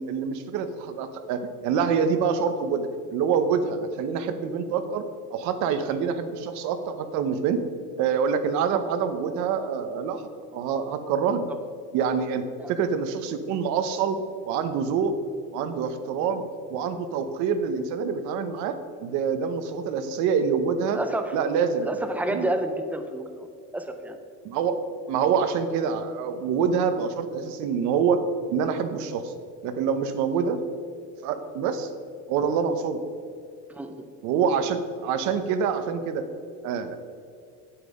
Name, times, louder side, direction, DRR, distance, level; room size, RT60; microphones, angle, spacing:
voice 1, 0.0-5.0 5.3-7.6 8.0-10.2 10.5-11.5 11.9-15.2 15.5-21.0 21.3-21.9 22.3-22.5 24.4-24.8 25.1-28.2 28.5-29.3 29.6-30.6 31.2-31.9 32.3-33.0 34.2-36.3 36.6-37.0, right 6 dB, 55° right, 9 dB, 0.9 m, -26 dB
voice 2, 20.9-21.3 21.8-23.5 23.7-24.2 33.7-34.0, right 1 dB, 5° right, 7 dB, 0.3 m, -30 dB
9.0 x 8.7 x 5.2 m, 2.3 s
cardioid pair, 175°, 35 cm